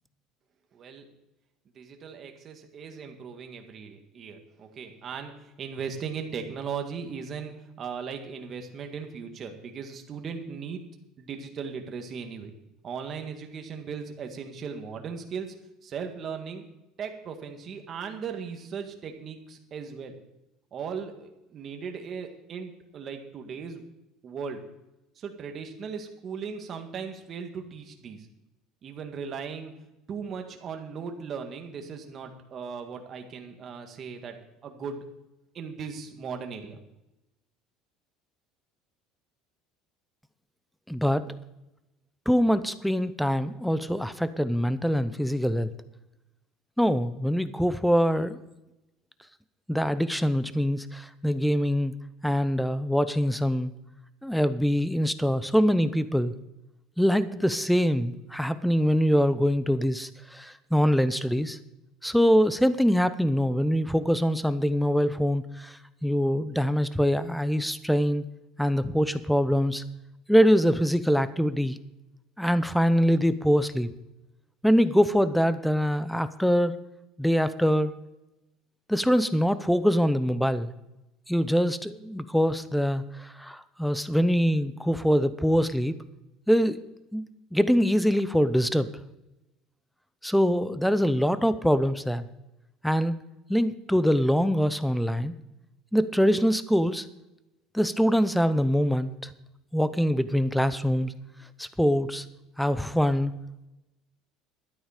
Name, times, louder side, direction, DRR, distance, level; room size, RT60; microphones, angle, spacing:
voice 1, 0.7-1.1 1.8-10.8 11.2-12.5 12.8-15.5 15.8-16.6 17.0-20.1 20.7-23.8 24.2-24.6 25.2-28.3 28.8-29.7 30.1-34.4 34.6-35.1 35.5-36.8, right 6 dB, 40° right, 4 dB, 1.8 m, -37 dB
voice 2, 40.9-41.4 42.3-45.7 46.8-48.4 49.7-51.9 52.2-53.7 54.2-56.3 57.0-61.6 62.0-68.3 68.6-69.8 70.3-71.8 72.4-73.9 74.6-76.8 77.2-77.9 78.9-80.7 81.3-86.0 86.5-86.8 87.1-87.3 87.5-88.9 90.2-92.3 92.8-93.2 93.5-95.3 95.9-97.0 97.7-99.3 99.7-101.1 101.6-102.2 102.6-103.3, equal, ahead, 14 dB, 0.7 m, -24 dB
12.5 x 10.0 x 5.0 m, 0.93 s
cardioid pair, 130°, 0 cm